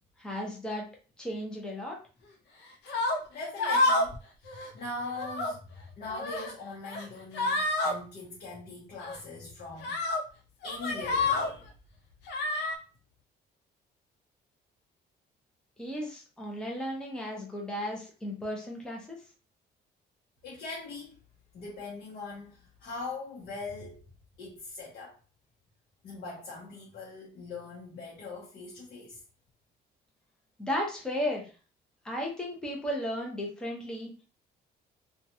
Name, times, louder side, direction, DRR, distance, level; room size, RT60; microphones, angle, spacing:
voice 1, 0.2-0.9 1.2-2.0 15.8-19.2 30.6-31.5 32.0-34.1, equal, 5° left, 0.7 m, -34 dB
sound 1, 2.9-3.2 3.6-4.2 4.5-4.7 5.1-5.5 6.0-6.5 6.9-7.1 7.3-7.9 9.0-9.2 9.8-10.2 10.6-11.5 12.3-12.8, left 2 dB, 85° left, 0.6 m, -28 dB
voice 2, 3.3-5.6 6.0-10.0 10.6-11.7 20.4-21.2 21.5-24.1 24.4-25.2 26.0-29.2, left 3 dB, 60° left, 0.8 m, -41 dB
2.9 x 2.3 x 2.7 m
cardioid pair, 160°, 17 cm